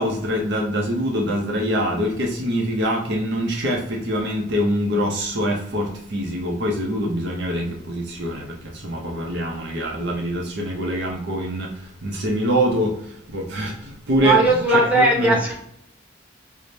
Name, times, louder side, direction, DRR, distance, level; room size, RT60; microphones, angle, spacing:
voice 1, 0.0-11.7 12.0-12.9 13.3-14.4 14.7-15.4, equal, 60° right, 0 dB, 0.6 m, -24 dB
voice 2, 14.2-15.5, right 2 dB, 10° right, -5 dB, 1.1 m, -18 dB
4.8 x 2.1 x 2.6 m, 0.70 s
head